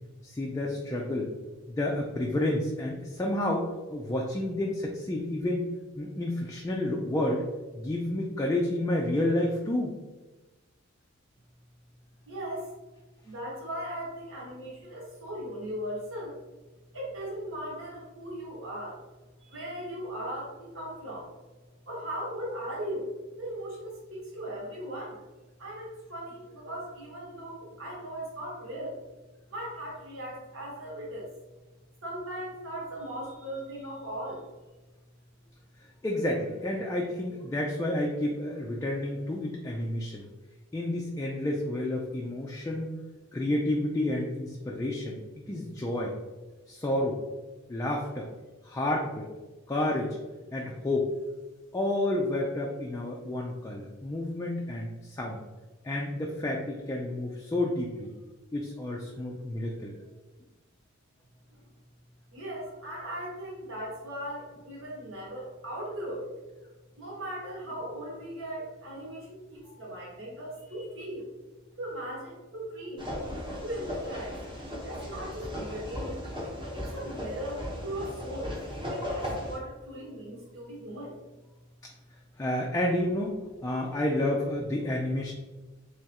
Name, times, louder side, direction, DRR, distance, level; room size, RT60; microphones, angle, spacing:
voice 1, 0.2-1.3 1.7-5.7 6.0-7.4 7.7-9.9 36.0-40.2 40.7-43.0 43.3-45.2 45.5-46.1 46.7-47.2 47.7-48.3 48.6-49.3 49.7-50.2 50.5-51.1 51.7-55.4 55.8-58.1 58.5-60.0 69.7-69.8 82.4-85.3, left 1 dB, 15° left, -1 dB, 0.3 m, -30 dB
voice 2, 12.2-12.7 13.2-16.4 16.9-19.0 19.4-21.3 21.9-23.1 23.4-25.2 25.6-29.0 29.5-31.3 32.0-34.5 61.5-61.7 62.3-66.3 67.0-71.3 71.8-73.1 73.6-74.4 74.8-76.2 76.7-81.1, right 1 dB, 65° right, -4 dB, 1.2 m, -38 dB
sound 1, 73.0-79.6, equal, 25° right, 0.9 m, -36 dB
3.5 x 3.0 x 2.8 m, 1.2 s
head